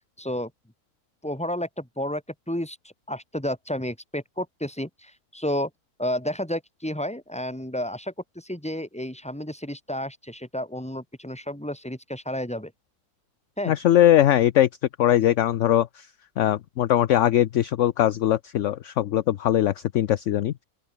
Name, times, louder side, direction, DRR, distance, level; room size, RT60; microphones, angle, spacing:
voice 1, 0.2-0.5 1.2-2.8 3.1-5.7 6.0-12.7 13.6-13.7, left 1 dB, 5° left, 3.2 m, -31 dB
voice 2, 13.7-14.7 15.0-15.9 16.4-20.5, left 12 dB, 60° left, 0.9 m, -20 dB
open air
omnidirectional pair, 1.6 m